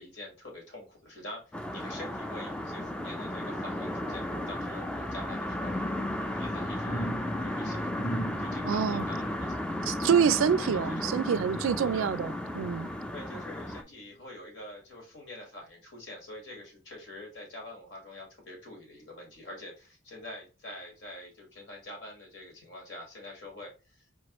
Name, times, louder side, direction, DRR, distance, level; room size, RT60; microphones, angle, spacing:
voice 1, 0.0-7.1 7.4-7.9 8.4-9.6 10.6-11.2 11.9-12.2 13.1-24.1, left 1 dB, 65° left, 1.7 m, -45 dB
sound 1, 1.5-13.8, left 1 dB, 5° left, 0.3 m, -34 dB
sound 2, 6.8-11.9 12.4-13.5 14.0-14.1, right 1 dB, 90° left, 1.8 m, -42 dB
voice 2, 8.7-9.0 9.9-12.9, right 7 dB, 85° right, 0.3 m, -26 dB
4.5 x 3.0 x 3.0 m
head